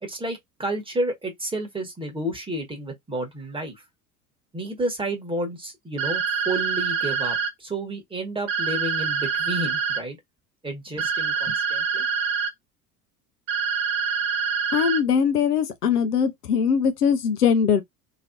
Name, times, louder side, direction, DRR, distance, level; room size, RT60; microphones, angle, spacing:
voice 1, 0.0-3.8 4.5-10.2 10.6-12.0, right 1 dB, 10° right, 1.3 m, -31 dB
sound 1, 6.0-7.5 8.5-10.0 11.0-12.5 13.5-15.0, right 6 dB, 65° right, 1.0 m, -25 dB
voice 2, 14.7-17.8, left 7 dB, 75° left, 0.8 m, -21 dB
3.0 x 2.8 x 2.5 m
figure-of-eight pair, 75°, 47 cm